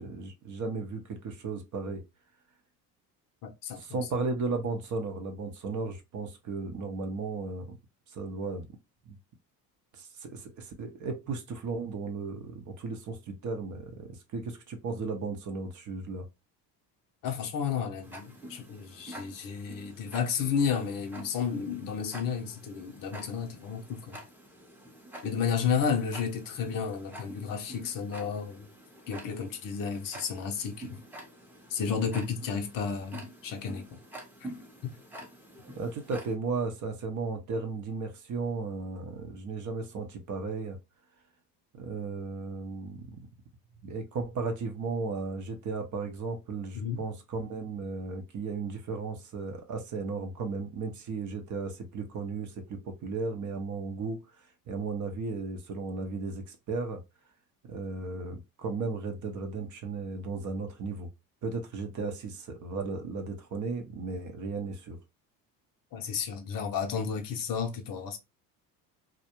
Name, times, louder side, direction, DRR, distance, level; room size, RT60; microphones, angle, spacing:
voice 1, 0.0-2.0 3.8-7.8 8.1-8.8 9.1-9.2 9.9-16.3 35.7-40.8 41.7-43.2 43.8-54.2 54.7-57.0 57.6-61.1 61.4-65.0, right 4 dB, 40° right, 0.7 m, -35 dB
voice 2, 3.4-4.0 17.2-24.2 25.2-28.7 29.1-31.0 31.7-34.0 34.4-34.5 46.7-47.0 65.9-68.2, left 6 dB, 45° left, 0.6 m, -32 dB
Tick-tock, 18.0-36.3, right 1 dB, 5° right, 0.7 m, -48 dB
2.3 x 2.1 x 2.9 m
hypercardioid pair, 65°, 47 cm